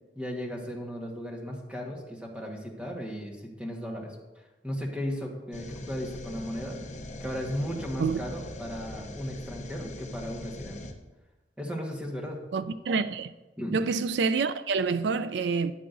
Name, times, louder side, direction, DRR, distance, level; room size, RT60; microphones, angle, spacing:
voice 1, 0.1-6.8 7.2-10.8 11.6-12.4 13.6-13.8, equal, 5° right, 1.4 m, -36 dB
sound 1, 5.5-10.9, left 1 dB, 40° left, 0.7 m, -41 dB
voice 2, 12.5-13.3 13.7-15.7, right 4 dB, 75° right, 0.4 m, -27 dB
12.5 x 9.5 x 2.6 m
head